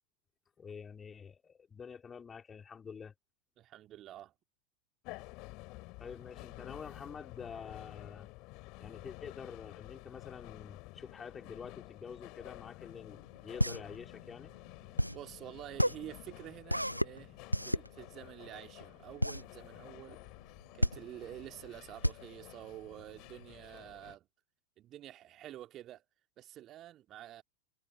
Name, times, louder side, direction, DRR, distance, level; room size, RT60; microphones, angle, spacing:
voice 1, 0.6-3.1 6.0-8.3 8.8-14.5, left 6 dB, 20° left, 4.6 m, -47 dB
voice 2, 3.6-4.3 15.1-17.4 17.6-20.2 20.7-24.3 24.8-26.0 26.4-27.4, right 13 dB, 30° right, 2.8 m, -49 dB
sound 1, 5.0-24.2, left 25 dB, 40° left, 5.5 m, -51 dB
sound 2, 13.1-23.5, equal, 90° left, 0.4 m, -33 dB
figure-of-eight pair, 90°, 0 cm